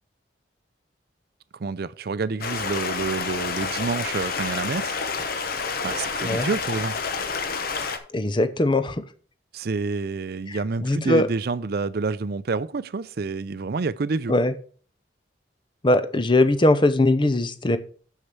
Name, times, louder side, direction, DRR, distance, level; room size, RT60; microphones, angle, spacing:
voice 1, 1.6-5.0 5.8-6.9 9.5-14.3, right 4 dB, 55° right, 0.4 m, -28 dB
Stream, 2.4-8.0, left 5 dB, 50° left, 0.9 m, -29 dB
voice 2, 8.1-9.0 10.5-11.3 14.3-14.5 15.8-17.8, left 2 dB, 25° left, 0.6 m, -21 dB
6.6 x 6.5 x 5.9 m
head